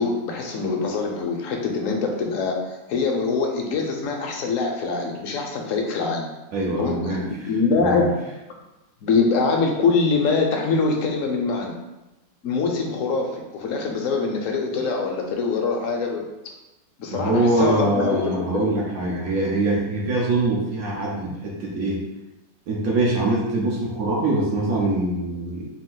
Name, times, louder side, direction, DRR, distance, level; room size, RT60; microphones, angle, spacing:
voice 1, 0.0-2.6 2.9-6.3 6.8-8.2 9.0-11.7 12.4-16.2 17.0-18.7, left 4 dB, 65° left, 2 dB, 1.0 m, -24 dB
voice 2, 6.5-7.5 7.8-8.1 17.1-22.0 22.7-25.7, right 2 dB, 80° right, -4 dB, 1.2 m, -23 dB
4.2 x 2.5 x 3.7 m, 1.0 s
omnidirectional pair, 1.5 m